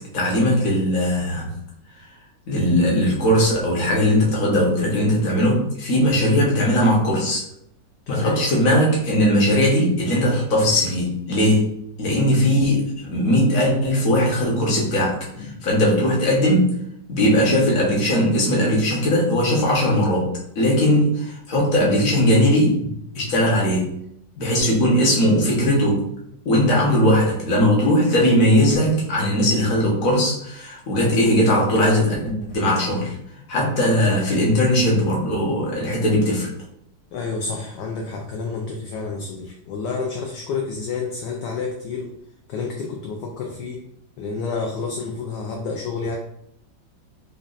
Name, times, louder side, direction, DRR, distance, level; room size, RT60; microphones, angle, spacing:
voice 1, 0.1-1.5 2.5-7.4 8.1-11.7 12.0-16.7 17.1-20.3 20.5-22.8 23.2-23.9 24.4-26.0 26.4-33.1 33.5-36.5, equal, 50° left, -3 dB, 1.3 m, -19 dB
voice 2, 8.1-8.4 15.4-15.6 22.8-22.9 37.1-42.1 42.5-43.8 44.2-46.2, left 4 dB, 75° left, 1 dB, 1.1 m, -29 dB
5.1 x 2.3 x 2.4 m, 0.74 s
omnidirectional pair, 2.1 m